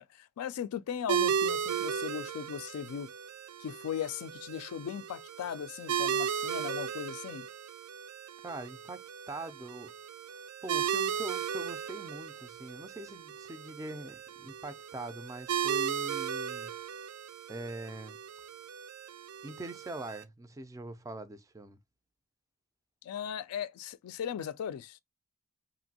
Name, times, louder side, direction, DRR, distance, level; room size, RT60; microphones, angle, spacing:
voice 1, 0.0-3.1 3.6-7.5 23.0-25.0, left 8 dB, 75° left, 0.3 m, -38 dB
sound 1, 1.1-20.2, right 8 dB, 85° right, 0.4 m, -36 dB
voice 2, 8.4-9.9 10.3-16.7 17.5-18.2 19.4-21.8, right 2 dB, 15° right, 0.3 m, -43 dB
2.9 x 2.6 x 2.7 m
head